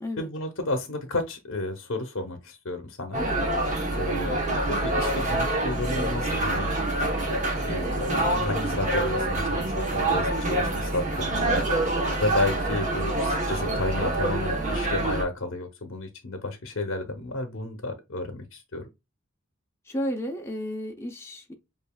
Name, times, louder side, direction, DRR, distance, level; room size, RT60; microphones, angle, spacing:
voice 1, 0.2-3.2 4.0-6.7 7.6-11.6 12.1-18.8, left 2 dB, 70° left, 0.7 m, -32 dB
sound 1, 3.1-15.2, right 2 dB, 35° right, 1.0 m, -26 dB
voice 2, 3.2-3.5 11.9-12.2 19.9-21.5, equal, 10° left, 0.6 m, -33 dB
6.8 x 2.5 x 2.2 m
head